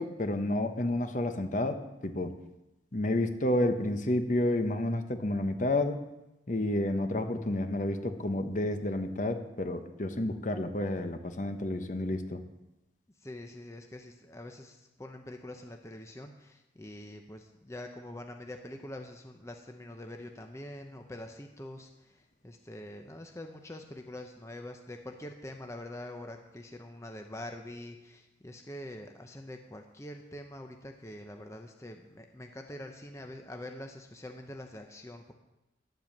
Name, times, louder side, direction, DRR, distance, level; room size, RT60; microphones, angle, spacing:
voice 1, 0.0-2.3 2.9-6.0 6.5-12.4, left 1 dB, 45° left, 7 dB, 1.0 m, -30 dB
voice 2, 13.2-35.3, left 1 dB, 15° left, 4 dB, 0.8 m, -45 dB
11.0 x 8.0 x 7.3 m, 0.94 s
head